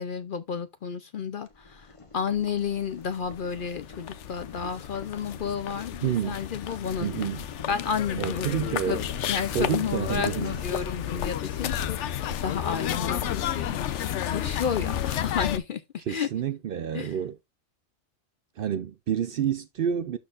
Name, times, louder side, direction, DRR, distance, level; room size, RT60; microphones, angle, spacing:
voice 1, 0.0-7.3 7.7-9.0 9.3-16.3 16.9-17.2, left 7 dB, 60° left, 0.6 m, -32 dB
Boiling, 1.4-14.2, left 3 dB, 30° left, 1.0 m, -48 dB
sound 1, 2.8-2.9 3.1-15.6, left 10 dB, 75° left, 1.0 m, -32 dB
voice 2, 6.0-6.4 7.0-7.4 8.2-9.0 9.5-10.5 16.1-17.4 18.6-20.2, right 9 dB, 60° right, 0.6 m, -29 dB
12.0 x 4.4 x 2.4 m
omnidirectional pair, 1.3 m